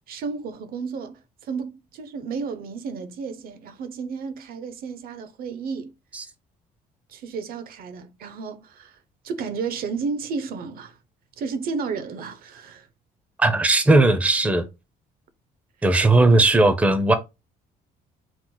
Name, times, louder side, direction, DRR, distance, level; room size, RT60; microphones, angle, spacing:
voice 1, 0.1-5.9 7.1-9.0 9.2-11.0 11.4-12.9, right 5 dB, 60° right, 0.6 m, -32 dB
voice 2, 13.4-14.7 15.8-17.1, right 2 dB, 10° right, 0.5 m, -17 dB
3.0 x 2.1 x 3.7 m
cardioid pair, 110°, 17 cm